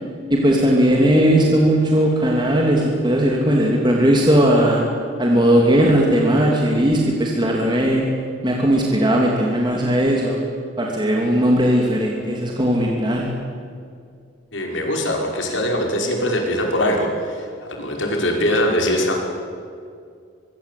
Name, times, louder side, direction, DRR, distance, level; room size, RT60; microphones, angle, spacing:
voice 1, 0.3-4.8 5.2-8.1 8.4-10.4 10.8-13.3, equal, 25° right, -1 dB, 3.1 m, -17 dB
voice 2, 14.5-19.1, left 1 dB, 80° left, 1 dB, 5.6 m, -22 dB
24.5 x 24.0 x 8.7 m, 2.3 s
head